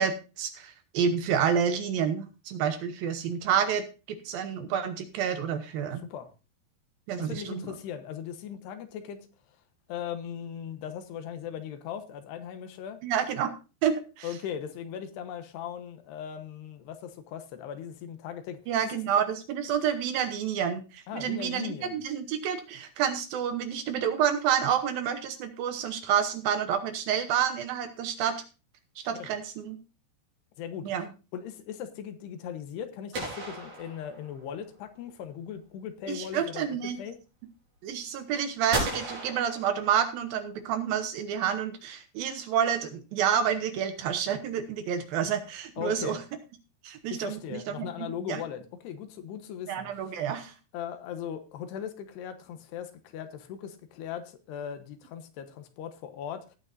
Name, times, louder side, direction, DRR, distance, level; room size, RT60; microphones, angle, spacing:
voice 1, 0.0-6.0 7.1-7.7 13.0-13.5 13.8-14.3 18.7-28.4 29.0-29.8 30.8-31.1 36.1-37.0 37.8-46.2 46.8-48.4 49.7-50.5, right 8 dB, 70° right, 8 dB, 2.5 m, -29 dB
voice 2, 7.2-9.2 9.9-13.0 14.2-19.0 21.1-22.0 29.1-29.3 30.6-30.9 31.3-37.2 45.8-46.2 47.1-49.9 50.7-56.6, left 8 dB, 80° left, 9 dB, 3.2 m, -39 dB
sound 1, 33.1-34.6 38.7-40.3, right 2 dB, 45° right, 5.6 m, -35 dB
18.0 x 8.7 x 2.6 m, 0.31 s
omnidirectional pair, 4.8 m